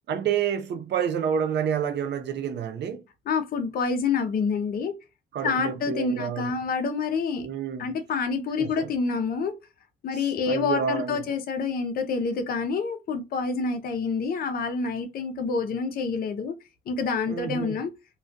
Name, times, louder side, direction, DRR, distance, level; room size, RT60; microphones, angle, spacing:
voice 1, 0.1-3.0 5.3-6.5 7.4-7.9 8.6-8.9 10.1-11.2 17.3-17.8, right 8 dB, 60° right, 0.5 m, -29 dB
voice 2, 3.3-4.9 5.4-7.5 7.8-9.6 10.0-16.5 16.9-17.9, left 5 dB, 50° left, 0.5 m, -27 dB
2.2 x 2.2 x 2.5 m
cardioid pair, 90°, 20 cm